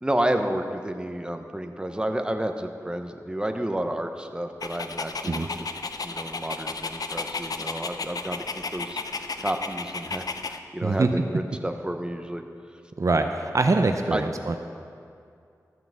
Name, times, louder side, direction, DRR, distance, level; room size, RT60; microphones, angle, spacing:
voice 1, 0.0-5.5 6.0-9.0 9.4-12.4 14.1-14.2, right 1 dB, 15° right, 6 dB, 0.9 m, -30 dB
Dog, 4.6-10.6, left 4 dB, 70° left, 0.6 m, -33 dB
voice 2, 13.0-14.6, right 3 dB, 55° right, 6 dB, 0.6 m, -23 dB
13.0 x 5.9 x 7.3 m, 2.4 s
wide cardioid pair, 55°, 7 cm